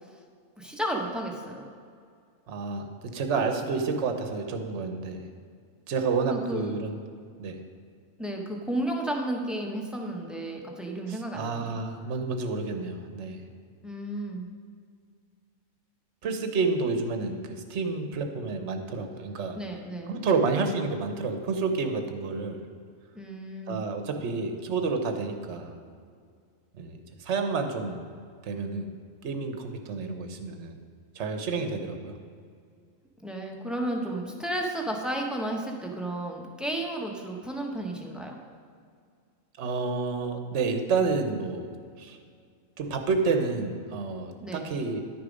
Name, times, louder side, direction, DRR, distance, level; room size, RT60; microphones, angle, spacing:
voice 1, 0.6-1.7 6.3-6.7 8.2-11.8 13.8-14.5 19.5-20.2 23.1-23.8 33.2-38.4 44.4-44.7, right 1 dB, ahead, 1 dB, 0.8 m, -33 dB
voice 2, 2.5-5.2 5.9-7.0 7.4-7.6 11.1-13.4 16.2-19.6 20.1-22.6 23.7-25.7 26.8-28.0 28.4-28.9 29.2-30.8 31.1-32.2 39.6-41.7 42.0-42.2 42.8-45.0, right 4 dB, 60° right, 6 dB, 1.1 m, -29 dB
10.5 x 6.7 x 5.2 m, 2.1 s
omnidirectional pair, 1.4 m